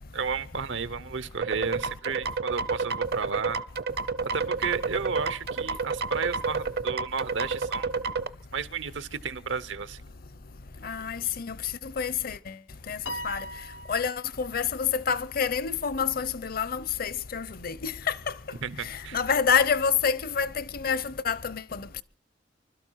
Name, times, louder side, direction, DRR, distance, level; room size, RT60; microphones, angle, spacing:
voice 1, 0.0-3.6 4.3-7.9 8.5-10.0 18.6-19.2, right 5 dB, 85° right, 0.8 m, -32 dB
sound 1, 1.4-8.3, right 4 dB, 60° right, 0.7 m, -29 dB
voice 2, 10.8-11.6 11.8-12.5 12.9-13.0 13.2-13.4 13.9-18.2 18.8-22.0, left 6 dB, 55° left, 0.7 m, -28 dB
Piano, 13.1-14.6, equal, 90° left, 0.9 m, -39 dB
25.0 x 12.5 x 4.6 m
head